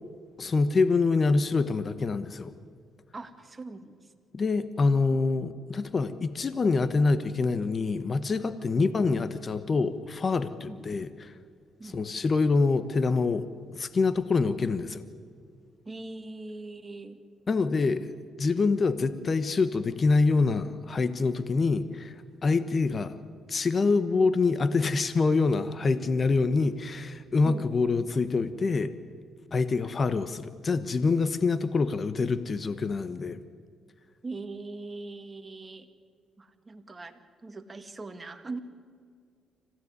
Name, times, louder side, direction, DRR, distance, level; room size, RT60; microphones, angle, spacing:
voice 1, 0.4-2.5 4.3-11.4 11.8-13.5 13.7-15.1 17.5-18.1 18.4-22.1 22.4-23.2 23.5-28.9 29.5-33.4, left 4 dB, 40° left, 13 dB, 1.1 m, -26 dB
voice 2, 3.1-4.1 8.7-8.9 10.6-10.8 11.8-12.0 15.9-17.2 27.4-27.7 34.2-35.9 36.4-38.6, right 3 dB, 25° right, 7 dB, 2.1 m, -41 dB
26.0 x 16.0 x 9.7 m, 2.1 s
cardioid pair, 90°, 0 cm